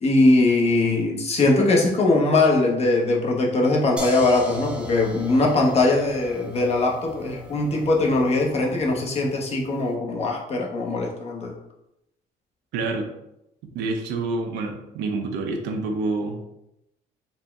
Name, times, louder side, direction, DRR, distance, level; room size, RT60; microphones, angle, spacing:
voice 1, 0.0-11.5, left 2 dB, 40° left, 0 dB, 0.8 m, -21 dB
sound 1, 4.0-9.8, equal, 5° right, 0.5 m, -38 dB
voice 2, 12.7-13.1 13.7-16.4, right 3 dB, 85° right, 3 dB, 0.6 m, -27 dB
4.1 x 2.1 x 3.4 m, 0.85 s
cardioid pair, 110°, 17 cm